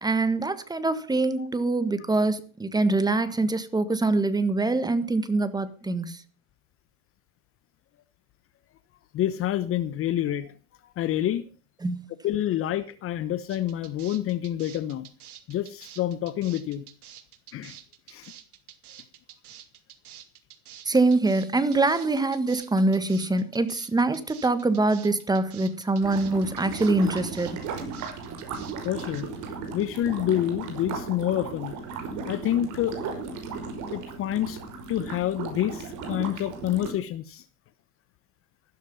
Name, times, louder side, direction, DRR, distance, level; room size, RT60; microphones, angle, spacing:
voice 1, 0.0-6.2 11.8-12.0 20.8-27.6, right 2 dB, 10° right, 1.6 m, -24 dB
voice 2, 9.1-10.5 11.0-11.4 12.2-15.1 15.5-16.8 17.5-17.7 18.1-18.3 28.8-29.3 29.7-31.7 32.3-33.0 33.9-34.6 34.9-37.4, left 12 dB, 30° left, 1.0 m, -28 dB
sound 1, 13.5-29.2, right 11 dB, 85° right, 2.4 m, -48 dB
sound 2, 26.0-36.9, right 5 dB, 40° right, 5.6 m, -36 dB
14.5 x 13.0 x 5.5 m
hypercardioid pair, 120°, 44 cm